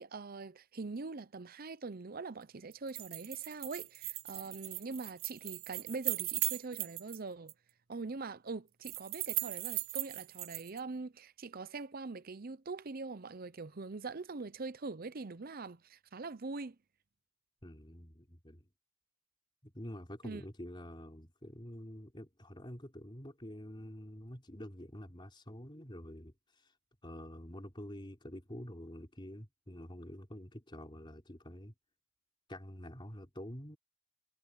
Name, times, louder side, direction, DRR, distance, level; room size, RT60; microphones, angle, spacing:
voice 1, 0.0-7.5 7.9-16.8 20.2-20.4, right 3 dB, 45° right, 0.7 m, -43 dB
sound 1, 2.7-7.2 7.5-7.6 8.8-10.8, right 17 dB, 75° right, 0.9 m, -38 dB
voice 2, 17.6-18.7 19.6-26.7 27.0-31.7 32.5-33.8, equal, 25° left, 4.1 m, -47 dB
head